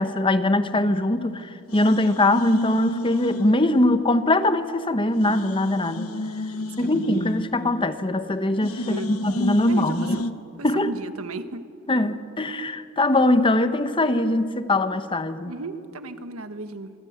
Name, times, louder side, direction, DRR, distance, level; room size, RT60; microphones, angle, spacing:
voice 1, 0.0-6.1 6.8-10.2 10.6-10.9 11.9-15.5, left 1 dB, 25° left, 1.1 m, -22 dB
sound 1, 0.7-1.4 1.7-4.3 4.6-4.7 5.1-8.2 8.6-10.3, left 1 dB, 80° left, 1.2 m, -31 dB
voice 2, 6.5-7.2 8.8-9.1 9.6-10.0 10.7-11.6 15.4-16.9, right 2 dB, 80° right, 1.4 m, -35 dB
27.5 x 24.0 x 8.0 m
head